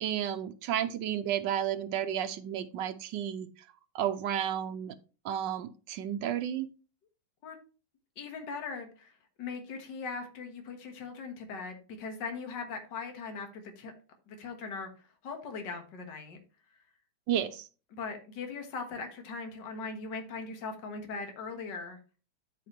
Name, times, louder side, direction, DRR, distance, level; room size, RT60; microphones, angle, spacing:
voice 1, 0.0-3.5 3.9-4.9 5.2-6.7 17.3-17.7, right 10 dB, 85° right, 8 dB, 1.4 m, -32 dB
voice 2, 8.2-9.1 9.4-13.9 14.3-14.9 15.2-16.4 17.9-22.0, left 4 dB, 75° left, 4 dB, 2.1 m, -40 dB
12.0 x 5.0 x 3.0 m, 0.35 s
omnidirectional pair, 1.9 m